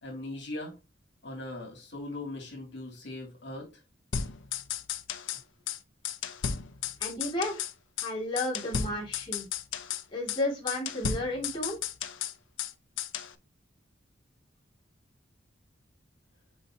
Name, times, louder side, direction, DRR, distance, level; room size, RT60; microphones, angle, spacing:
voice 1, 0.0-0.7 1.2-3.7, left 2 dB, 65° left, 3.0 m, -39 dB
sound 1, 4.1-5.4 5.7-5.8 6.0-7.7 8.0-8.1 8.4-10.0 10.3-10.4 10.7-12.7 13.0-13.3, left 7 dB, 90° left, 0.7 m, -34 dB
voice 2, 7.0-7.6 8.0-9.5 10.1-11.8, left 1 dB, 25° left, 2.7 m, -32 dB
6.5 x 5.5 x 2.9 m
head